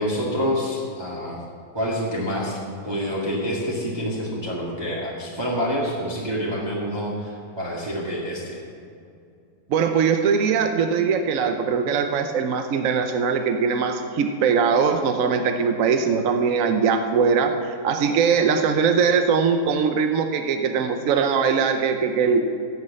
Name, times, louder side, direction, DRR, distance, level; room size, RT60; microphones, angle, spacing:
voice 1, 0.0-1.4 1.7-8.6, equal, 15° right, -5 dB, 1.7 m, -27 dB
voice 2, 9.7-22.5, right 6 dB, 60° right, 6 dB, 1.0 m, -21 dB
16.0 x 6.4 x 7.5 m, 2.4 s
omnidirectional pair, 1.8 m